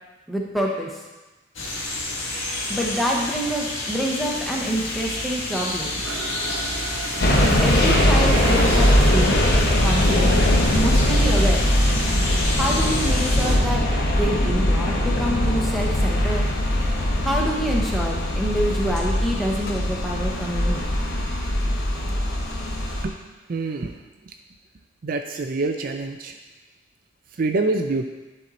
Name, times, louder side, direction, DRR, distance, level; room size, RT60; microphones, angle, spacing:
voice 1, 0.3-1.0 2.7-5.9 7.4-9.4 9.8-10.4 10.7-11.6 12.6-13.8 14.2-16.5 17.2-20.8, equal, ahead, -2 dB, 1.0 m, -26 dB
sound 1, 1.5-13.6, left 1 dB, 90° left, 1.6 m, -28 dB
Mechanisms, 4.7-5.6 5.9-9.5, right 2 dB, 75° right, 0.9 m, -34 dB
sound 2, 7.2-23.0, left 1 dB, 50° left, 1.0 m, -21 dB
voice 2, 23.5-23.9 25.0-26.3 27.4-28.0, right 3 dB, 45° right, 5 dB, 0.4 m, -25 dB
10.5 x 4.4 x 4.1 m, 1.2 s
head